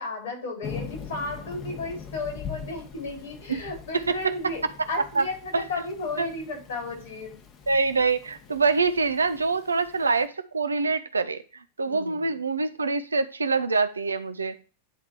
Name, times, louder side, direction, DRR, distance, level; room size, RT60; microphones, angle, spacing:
voice 1, 0.0-4.6 4.9-7.4 11.9-12.3, left 2 dB, 60° left, 0 dB, 4.3 m, -34 dB
Thunder / Rain, 0.6-10.3, left 6 dB, 35° left, 1.3 m, -42 dB
voice 2, 3.9-4.3 5.2-5.3 5.5-5.8 6.2-6.3 7.7-14.5, right 4 dB, 75° right, 11 dB, 0.6 m, -25 dB
10.0 x 3.6 x 4.5 m, 0.35 s
figure-of-eight pair, 90°, 0 cm